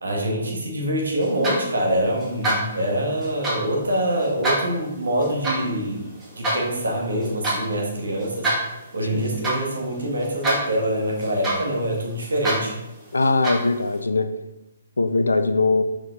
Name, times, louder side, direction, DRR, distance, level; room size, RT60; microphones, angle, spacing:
voice 1, 0.0-6.0 6.4-8.5 8.9-12.7, right 1 dB, 70° right, -1 dB, 1.7 m, -25 dB
sound 1, 1.2-14.0, right 1 dB, 15° right, 2.2 m, -29 dB
voice 2, 13.1-14.3 15.0-15.8, left 3 dB, 75° left, 10 dB, 0.5 m, -21 dB
5.0 x 5.0 x 3.9 m, 0.95 s
figure-of-eight pair, 130°, 0 cm